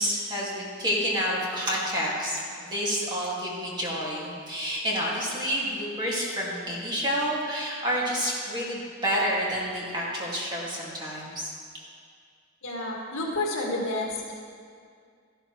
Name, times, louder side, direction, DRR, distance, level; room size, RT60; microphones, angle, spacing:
voice 1, 0.0-11.5, equal, 20° right, -5 dB, 2.1 m, -29 dB
voice 2, 12.6-14.3, left 2 dB, 60° left, -2 dB, 1.9 m, -30 dB
14.0 x 12.5 x 3.2 m, 2.2 s
head